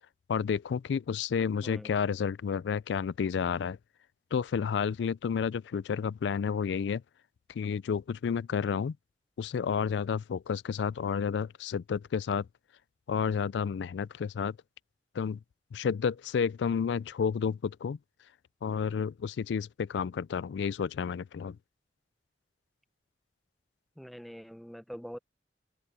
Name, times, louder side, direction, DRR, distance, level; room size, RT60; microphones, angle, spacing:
voice 1, 0.3-3.8 4.3-7.0 7.5-9.0 9.4-12.5 13.1-14.6 15.2-15.4 15.7-18.0 18.6-21.6, left 6 dB, 75° left, 0.3 m, -31 dB
voice 2, 24.0-25.2, equal, ahead, 0.7 m, -44 dB
open air
head